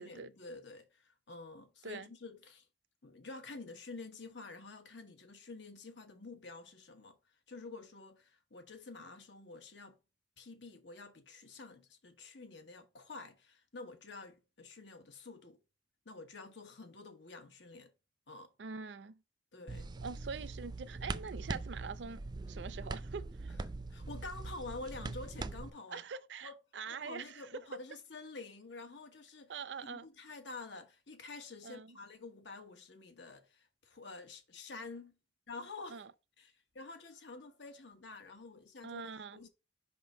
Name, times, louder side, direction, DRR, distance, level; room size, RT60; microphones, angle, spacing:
voice 1, 0.0-2.7 3.0-10.0 10.4-15.6 16.0-17.9 18.3-18.5 19.5-19.9 23.5-23.6 23.9-26.0 26.4-26.6 26.9-29.5 29.8-35.2 35.5-36.1 36.4-39.5, left 3 dB, 85° left, 1.2 m, -49 dB
voice 2, 18.6-19.2 20.0-23.5 25.9-27.5 29.5-30.1 31.6-32.0 35.9-36.1 38.8-39.4, right 5 dB, 80° right, 0.5 m, -44 dB
sound 1, 19.7-25.7, right 3 dB, 25° right, 0.4 m, -42 dB
5.4 x 3.6 x 5.1 m
head